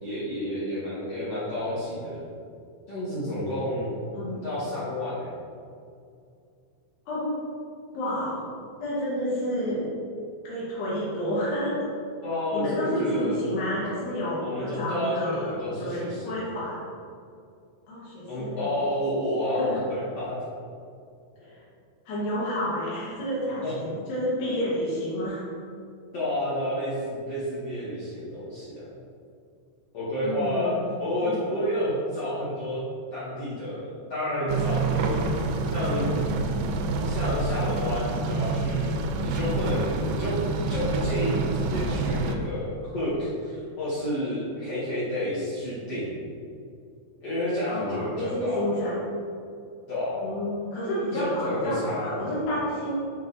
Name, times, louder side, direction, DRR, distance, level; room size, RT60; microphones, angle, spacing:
voice 1, 0.0-2.2 2.9-4.0 4.4-5.3 12.2-13.4 14.4-16.4 18.3-20.4 23.6-23.7 26.1-28.9 29.9-30.7 31.0-32.8 33.1-35.2 35.7-36.1 37.0-39.0 39.2-40.4 40.7-46.1 47.2-48.6 49.9-50.3 51.1-52.5, left 1 dB, 50° left, -11 dB, 2.0 m, -30 dB
voice 2, 4.1-4.5 7.1-7.4 7.9-8.5 8.8-9.9 10.4-11.8 12.5-16.8 17.9-18.8 19.5-19.8 21.4-21.6 22.1-25.4 30.2-30.7 31.2-31.4 47.7-49.0 50.2-53.0, equal, 85° left, -9 dB, 3.6 m, -30 dB
sound 1, 34.5-42.4, right 3 dB, 80° right, 2.3 m, -27 dB
7.4 x 4.2 x 4.0 m, 2.4 s
omnidirectional pair, 4.6 m